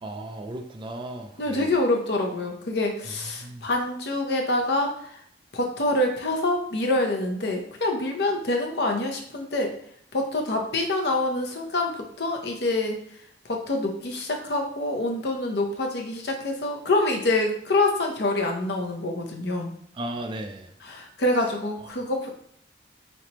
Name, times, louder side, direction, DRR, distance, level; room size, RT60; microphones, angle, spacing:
voice 1, 0.0-1.7 3.4-3.6 20.0-20.7, right 1 dB, 25° right, 5 dB, 0.3 m, -35 dB
voice 2, 1.4-5.2 5.5-9.7 10.1-13.0 13.4-19.7 20.8-22.3, left 2 dB, 60° left, 2 dB, 0.7 m, -26 dB
4.1 x 3.2 x 2.9 m, 0.65 s
head